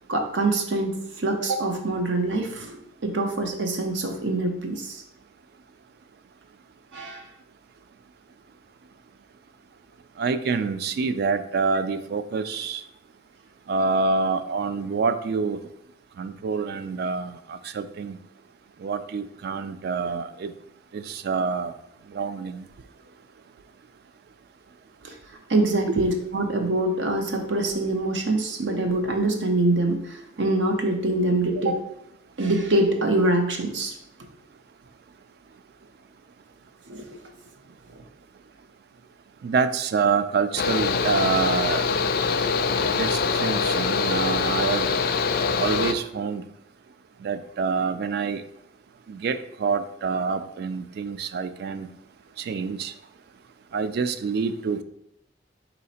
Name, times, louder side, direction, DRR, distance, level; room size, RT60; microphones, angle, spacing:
voice 1, 0.1-2.8 3.0-5.0 6.9-7.3 25.0-25.1 25.5-31.8 32.4-33.9 36.9-37.1, right 2 dB, 80° right, 4 dB, 0.7 m, -24 dB
voice 2, 10.2-12.8 13.7-15.6 16.2-18.2 18.8-20.5 20.9-21.7 22.1-22.7 25.9-26.0 39.4-41.8 42.8-45.0 45.6-46.4 47.2-48.4 49.1-51.9 52.4-52.9 53.7-54.8, right 5 dB, 60° right, 11 dB, 0.3 m, -27 dB
Mechanical fan, 40.6-45.9, left 5 dB, 55° left, 0.3 m, -24 dB
4.1 x 2.8 x 4.1 m, 0.77 s
head